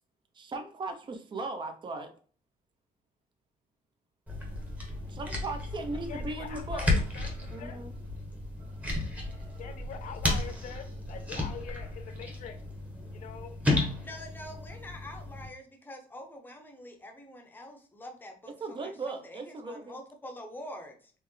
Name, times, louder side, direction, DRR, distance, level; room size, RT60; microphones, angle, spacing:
voice 1, 0.3-2.1 5.1-6.9 7.5-7.9 18.6-20.0, right 3 dB, 30° right, 7 dB, 0.7 m, -37 dB
sound 1, 4.3-15.5, left 2 dB, 10° right, 1.1 m, -33 dB
voice 2, 6.1-7.8 9.6-12.6 13.1-13.9, left 8 dB, 60° left, 6 dB, 0.8 m, -44 dB
voice 3, 14.0-21.1, left 1 dB, 15° left, 4 dB, 0.8 m, -46 dB
4.3 x 3.2 x 3.2 m, 0.43 s
cardioid pair, 145°, 15 cm